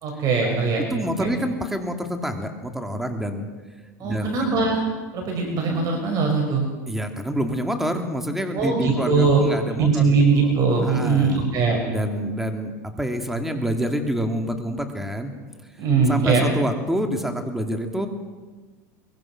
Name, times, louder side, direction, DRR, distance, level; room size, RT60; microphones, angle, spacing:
voice 1, 0.0-0.8 1.2-1.3 4.0-4.8 5.1-6.7 8.5-9.4 9.8-11.8 15.8-16.4, right 4 dB, 40° right, 2 dB, 5.8 m, -21 dB
voice 2, 0.9-3.5 4.0-4.5 6.9-10.5 10.8-11.4 11.9-15.3 16.1-18.1, equal, 5° right, 4 dB, 2.8 m, -27 dB
23.5 x 23.0 x 6.1 m, 1.3 s
supercardioid pair, 120°, 9 cm